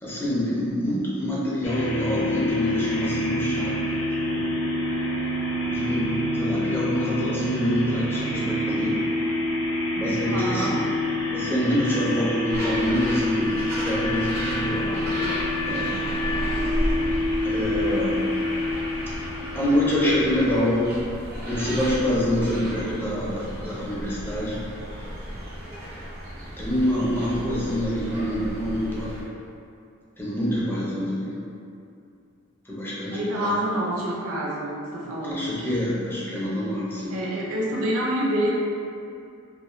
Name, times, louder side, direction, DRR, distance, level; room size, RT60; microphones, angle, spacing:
voice 1, 0.0-3.7 4.3-4.6 5.6-6.1 6.3-9.0 9.9-10.8 11.3-14.9 15.6-15.9 17.4-18.2 19.5-20.9 21.4-24.6 26.6-29.2 30.2-31.4 32.7-33.6 35.3-37.2, left 1 dB, 10° left, -8 dB, 0.5 m, -26 dB
sound 1, 1.6-19.9, left 1 dB, 65° left, 0.5 m, -27 dB
voice 2, 10.2-10.8 14.6-15.4 33.1-35.6 37.1-38.5, equal, 80° right, -5 dB, 0.5 m, -28 dB
sound 2, 12.5-29.2, equal, 45° right, 0.7 m, -34 dB
2.3 x 2.3 x 3.0 m, 2.5 s
head